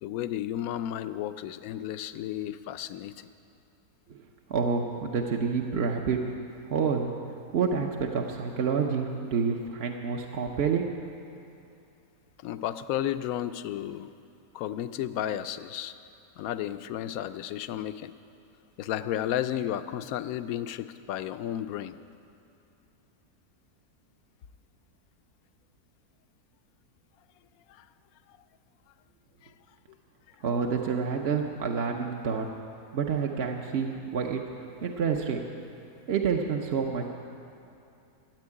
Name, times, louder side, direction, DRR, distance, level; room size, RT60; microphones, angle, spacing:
voice 1, 0.0-3.3 12.4-14.1 14.5-15.9 16.4-18.1 18.8-22.0 27.7-27.9 29.4-29.5, left 11 dB, 70° left, 11 dB, 1.0 m, -33 dB
voice 2, 4.5-6.2 6.7-7.1 7.5-10.9 30.4-32.5 32.9-34.4 34.8-35.4 36.1-37.1, right 6 dB, 50° right, 1 dB, 0.9 m, -28 dB
13.5 x 8.1 x 9.7 m, 2.7 s
omnidirectional pair, 1.7 m